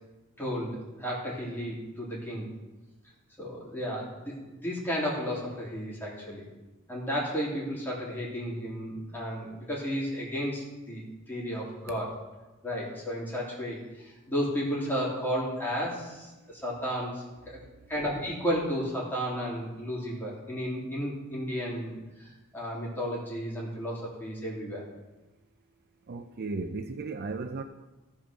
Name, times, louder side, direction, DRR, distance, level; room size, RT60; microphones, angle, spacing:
voice 1, 0.4-2.5 3.4-6.5 6.9-12.1 12.6-17.6 17.9-24.9, equal, 10° left, 3.1 m, -33 dB
voice 2, 17.5-17.9 26.1-27.6, right 3 dB, 45° right, 0.5 m, -36 dB
15.0 x 5.1 x 6.2 m
head